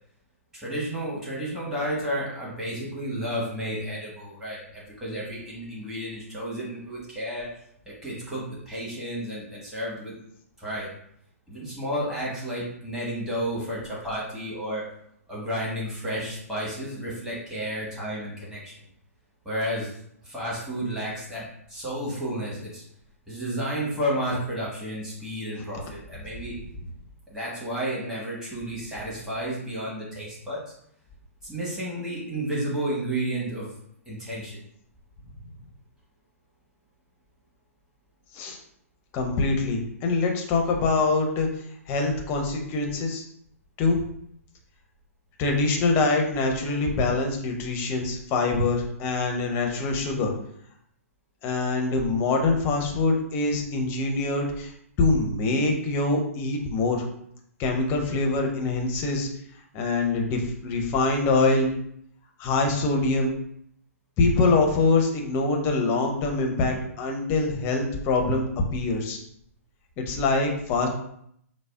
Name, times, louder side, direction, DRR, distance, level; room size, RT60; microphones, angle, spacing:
voice 1, 0.5-7.5 8.0-10.1 10.6-10.9 11.5-14.8 15.3-18.7 19.4-19.9 20.2-22.8 23.3-26.5 27.3-30.7 31.4-33.7 34.1-34.6, equal, 5° right, -7 dB, 1.3 m, -32 dB
voice 2, 39.1-41.5 41.9-43.2 43.8-44.0 45.4-50.3 51.4-54.7 55.0-57.0 57.6-59.3 59.7-61.7 62.4-63.3 64.2-68.4 68.7-69.2 70.0-70.9, left 3 dB, 25° left, 2 dB, 0.6 m, -24 dB
4.8 x 2.0 x 2.3 m, 0.70 s
figure-of-eight pair, 120°, 8 cm